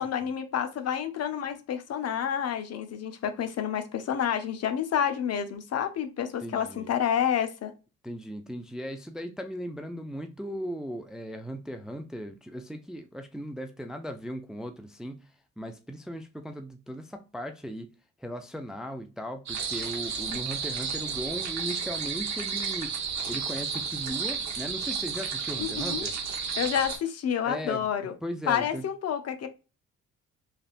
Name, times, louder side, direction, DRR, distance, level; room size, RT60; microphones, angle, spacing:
voice 1, 0.0-7.7 25.6-26.1 26.6-28.1 28.5-29.5, left 9 dB, 55° left, 0.6 m, -29 dB
voice 2, 6.4-6.9 8.0-15.3 15.6-17.9 18.2-23.0 23.3-26.1 27.4-27.9 28.2-28.8, equal, ahead, 0.4 m, -37 dB
sound 1, 19.5-27.0, right 6 dB, 65° right, 0.9 m, -32 dB
3.3 x 2.4 x 2.4 m
cardioid pair, 90°, 30 cm